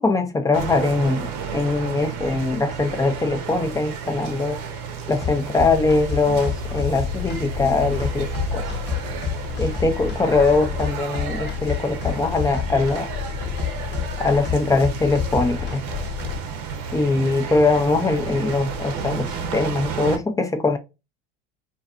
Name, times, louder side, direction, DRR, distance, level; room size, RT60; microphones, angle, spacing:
voice 1, 0.0-4.6 5.1-8.7 9.6-13.1 14.2-15.8 16.9-20.8, left 3 dB, 10° left, 0.4 m, -22 dB
sound 1, 0.5-20.2, right 5 dB, 60° right, 0.7 m, -32 dB
sound 2, 5.2-16.4, left 9 dB, 35° left, 0.8 m, -29 dB
2.4 x 2.4 x 2.3 m
hypercardioid pair, 90°, 30 cm